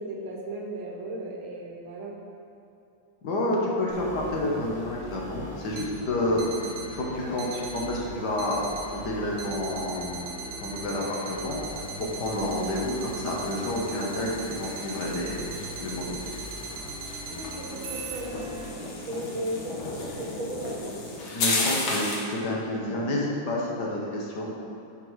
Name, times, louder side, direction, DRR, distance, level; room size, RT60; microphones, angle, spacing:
voice 1, 0.0-2.2 17.3-21.0, right 1 dB, 80° right, -1 dB, 1.9 m, -36 dB
voice 2, 3.2-10.2 10.6-16.4 21.3-24.5, left 1 dB, 60° left, -3 dB, 1.7 m, -29 dB
sound 1, 3.9-18.7, equal, 20° left, 1.3 m, -42 dB
sound 2, 5.7-5.9 6.4-6.9 7.4-7.9 8.4-8.9 9.4-18.2, right 5 dB, 60° right, 1.2 m, -39 dB
sound 3, 11.6-22.3, left 2 dB, 85° left, 2.0 m, -35 dB
10.0 x 4.5 x 4.6 m, 2.7 s
omnidirectional pair, 2.1 m